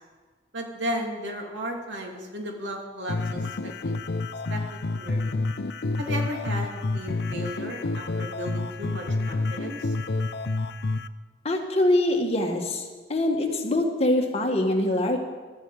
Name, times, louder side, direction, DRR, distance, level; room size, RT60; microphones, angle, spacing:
voice 1, 0.5-3.9 4.5-4.6 4.9-5.4 6.0-9.9, equal, 85° right, 1 dB, 2.7 m, -34 dB
sound 1, 3.1-11.1, left 3 dB, 65° left, 0.6 m, -29 dB
voice 2, 11.4-15.2, left 1 dB, 35° left, 2 dB, 1.8 m, -24 dB
16.0 x 13.5 x 5.0 m, 1.4 s
head